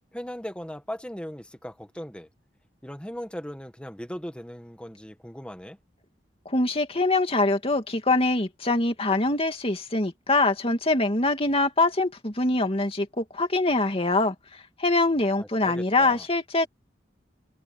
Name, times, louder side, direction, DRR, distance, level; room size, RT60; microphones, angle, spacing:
voice 1, 0.1-2.3 2.8-5.8 15.4-16.3, equal, 5° left, 1.8 m, -38 dB
voice 2, 6.5-14.3 14.8-16.7, left 2 dB, 35° left, 2.6 m, -24 dB
head